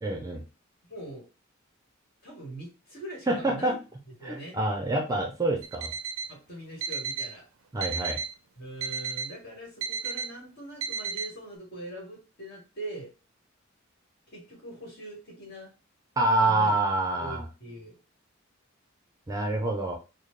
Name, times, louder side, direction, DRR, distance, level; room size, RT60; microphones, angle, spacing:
voice 1, 0.0-0.4 3.3-3.8 4.2-5.9 7.7-8.2 16.2-17.4 19.3-20.0, right 2 dB, 15° right, 2 dB, 0.5 m, -26 dB
voice 2, 0.9-1.2 2.2-3.8 4.2-4.5 6.3-7.4 8.6-13.1 14.3-15.7 16.4-16.7 17.1-17.9, right 1 dB, 50° left, -1 dB, 1.7 m, -42 dB
Alarm, 5.6-6.3 6.8-7.3 7.8-8.3 8.8-9.3 9.8-10.3 10.8-11.3, right 5 dB, 70° right, 0.4 m, -33 dB
4.1 x 2.1 x 3.2 m, 0.31 s
head